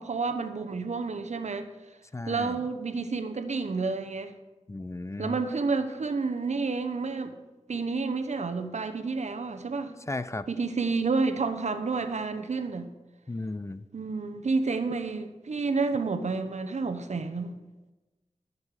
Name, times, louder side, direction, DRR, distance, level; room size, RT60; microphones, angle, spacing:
voice 1, 0.0-1.7 2.3-4.3 5.2-7.3 7.7-9.9 10.5-12.9 13.9-17.5, right 4 dB, 70° right, 9 dB, 0.9 m, -30 dB
voice 2, 2.1-2.6 4.7-5.4 10.1-10.5 13.3-13.8, left 2 dB, 25° left, 13 dB, 0.5 m, -35 dB
11.5 x 6.4 x 4.9 m, 1.1 s
cardioid pair, 50°, 12 cm